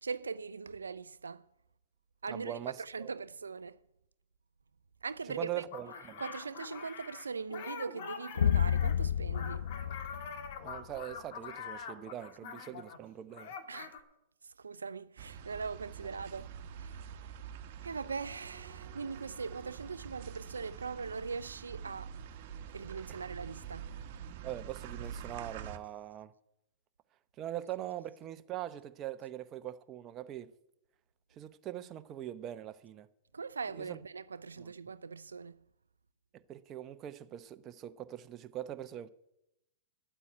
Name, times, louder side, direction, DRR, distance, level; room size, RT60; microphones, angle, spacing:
voice 1, 0.0-1.5 2.2-3.8 5.0-5.6 6.2-9.7 13.7-14.0 14.4-17.4 17.8-22.2 22.7-23.9 33.3-35.6, right 5 dB, 90° right, 0.4 m, -41 dB
voice 2, 2.3-3.1 5.3-6.2 10.6-13.5 24.4-26.3 27.4-30.5 31.4-33.1 33.8-34.0 34.6-34.7 36.3-39.1, right 12 dB, 30° right, 0.8 m, -42 dB
sound 1, 5.7-13.0 13.3-14.0, left 6 dB, 55° left, 1.8 m, -45 dB
sound 2, 8.4-11.0, left 8 dB, 75° left, 0.4 m, -30 dB
sound 3, 15.2-25.8, right 8 dB, 55° right, 1.2 m, -46 dB
10.0 x 8.3 x 9.3 m
hypercardioid pair, 110°, 0 cm